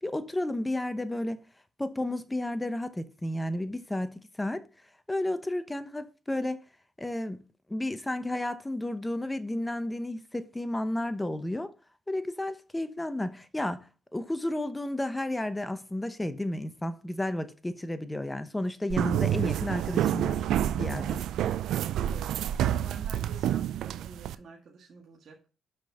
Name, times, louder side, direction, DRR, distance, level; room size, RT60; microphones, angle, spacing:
voice 1, 0.0-1.4 1.8-4.6 5.1-6.6 7.0-7.4 7.7-11.7 12.1-13.9 14.1-20.5 20.8-21.2, left 1 dB, 10° left, 0.9 m, -32 dB
sound 1, 18.9-24.3, right 11 dB, 80° right, 0.4 m, -28 dB
voice 2, 21.5-22.4 22.8-25.4, right 4 dB, 55° right, 1.8 m, -49 dB
5.9 x 5.2 x 5.7 m
cardioid pair, 90°, 0 cm